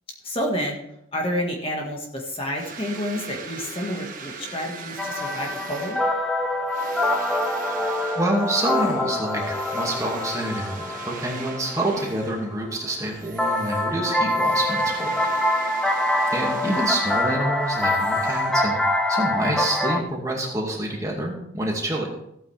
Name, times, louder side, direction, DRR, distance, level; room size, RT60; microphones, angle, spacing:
voice 1, 0.2-0.8 1.1-6.0 16.6-16.8, equal, 30° left, 0 dB, 1.8 m, -29 dB
sound 1, 2.5-12.6 12.9-19.0, right 5 dB, 45° right, 1.4 m, -41 dB
sound 2, 5.0-12.4 13.4-20.0, left 1 dB, 5° left, 0.7 m, -25 dB
voice 2, 8.2-15.2 16.3-18.8 19.1-22.1, right 1 dB, 15° right, -1 dB, 2.2 m, -27 dB
15.5 x 8.8 x 3.5 m, 0.78 s
head